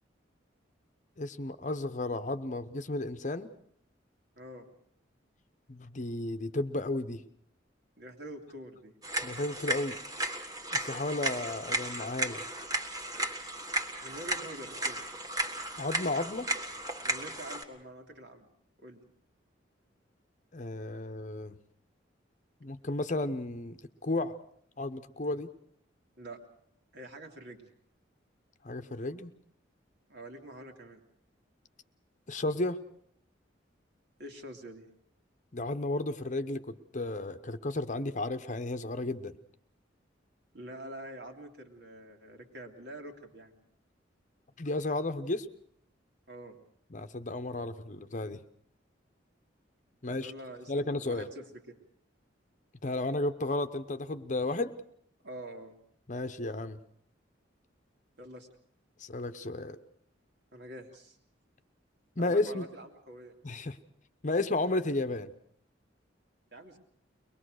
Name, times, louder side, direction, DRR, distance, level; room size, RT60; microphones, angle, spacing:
voice 1, 1.2-3.5 5.7-7.2 9.2-10.0 10.7-12.4 15.8-16.5 20.5-21.6 22.6-24.3 24.8-25.5 28.6-29.3 32.3-32.8 35.5-39.4 44.6-45.5 46.9-48.4 50.0-50.3 50.7-51.3 52.8-54.7 56.1-56.8 59.0-59.8 62.2-62.6 63.4-63.8 64.2-65.3, left 2 dB, 40° left, 10 dB, 0.9 m, -33 dB
voice 2, 4.4-4.7 8.0-8.9 14.0-15.0 17.0-18.5 18.8-19.0 26.2-26.4 26.9-27.7 30.1-31.0 34.2-34.9 40.5-43.5 46.3-46.6 50.1-51.8 55.2-55.8 58.2-58.5 60.5-61.2 62.2-63.3 66.5-66.8, right 1 dB, 60° right, 3 dB, 2.6 m, -46 dB
sound 1, 9.0-17.6, right 1 dB, 20° right, 1.6 m, -35 dB
23.0 x 20.5 x 6.5 m, 0.65 s
head